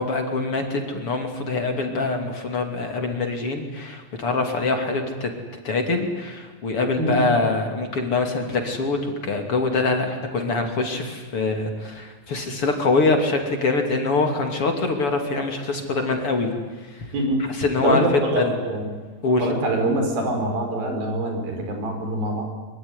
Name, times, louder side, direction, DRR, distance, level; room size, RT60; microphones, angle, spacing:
voice 1, 0.0-5.3 5.7-16.5 16.9-17.1 17.4-18.6 19.2-19.5, left 3 dB, 40° left, 4 dB, 3.4 m, -24 dB
voice 2, 17.1-17.4 17.8-18.8 19.4-22.4, right 2 dB, 85° right, 4 dB, 6.4 m, -24 dB
24.0 x 24.0 x 9.7 m, 1.4 s
omnidirectional pair, 4.1 m